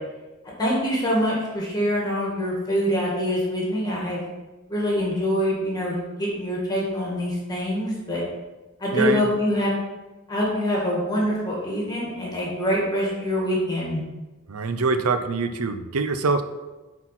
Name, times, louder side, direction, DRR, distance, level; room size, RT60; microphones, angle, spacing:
voice 1, 0.6-4.2 4.7-8.2 8.8-9.7 10.3-14.0, equal, 20° left, -4 dB, 2.0 m, -25 dB
voice 2, 8.9-9.3 14.5-16.4, right 4 dB, 85° right, 10 dB, 0.7 m, -24 dB
8.3 x 4.4 x 5.9 m, 1.2 s
head